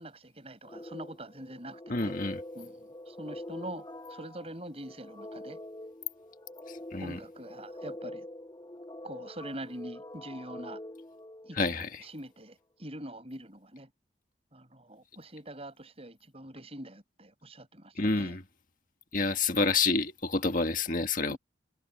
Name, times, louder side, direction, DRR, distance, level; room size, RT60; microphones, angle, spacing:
voice 1, 0.0-2.1 2.5-5.6 7.0-8.3 9.0-10.8 11.4-13.9 14.5-18.4 21.3-21.4, right 1 dB, 35° right, 6.3 m, -44 dB
sound 1, 0.7-12.0, left 1 dB, 20° left, 3.8 m, -45 dB
voice 2, 1.9-2.4 6.7-7.2 11.5-12.0 18.0-18.4 19.1-21.4, left 3 dB, 50° left, 1.6 m, -28 dB
head